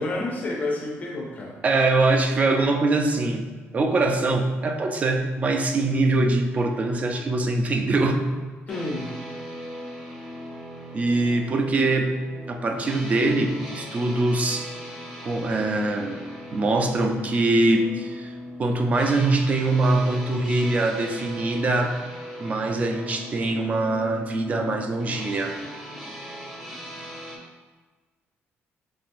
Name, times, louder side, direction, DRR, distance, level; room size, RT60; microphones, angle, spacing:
voice 1, 0.0-1.6 8.7-9.2, left 2 dB, 35° left, -1 dB, 0.5 m, -29 dB
voice 2, 1.6-3.5 3.7-8.3 10.9-12.2 12.5-14.7 15.2-16.2 16.5-18.3 18.6-22.0 22.4-25.5, right 2 dB, 30° right, 4 dB, 0.4 m, -23 dB
sound 1, 8.7-27.4, equal, 10° right, 0.7 m, -39 dB
4.6 x 2.9 x 2.5 m, 1.4 s
cardioid pair, 145°, 5 cm